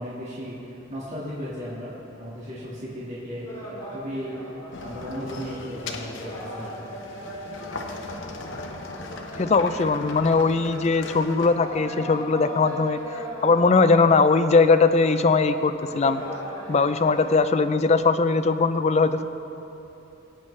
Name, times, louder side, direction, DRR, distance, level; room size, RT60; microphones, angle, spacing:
voice 1, 0.0-6.9, equal, 35° right, -8 dB, 1.8 m, -36 dB
sound 1, 3.5-5.7 6.0-17.3, equal, 20° left, 2.6 m, -39 dB
sound 2, 4.7-11.6, left 3 dB, 70° left, 0.9 m, -38 dB
voice 2, 9.4-13.0 13.4-16.2 16.7-19.2, left 4 dB, 35° left, 10 dB, 0.4 m, -20 dB
20.0 x 8.9 x 3.3 m, 3.0 s
head